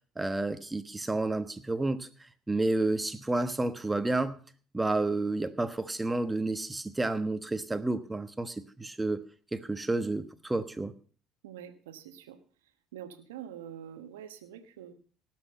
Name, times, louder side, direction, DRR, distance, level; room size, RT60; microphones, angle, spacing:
voice 1, 0.2-2.1 2.5-4.4 4.7-9.2 9.5-10.9, right 2 dB, 15° right, 12 dB, 1.2 m, -30 dB
voice 2, 11.4-12.4 12.9-14.9, right 10 dB, 85° right, 10 dB, 1.2 m, -45 dB
18.5 x 6.2 x 5.6 m, 0.41 s
hypercardioid pair, 65°, 0 cm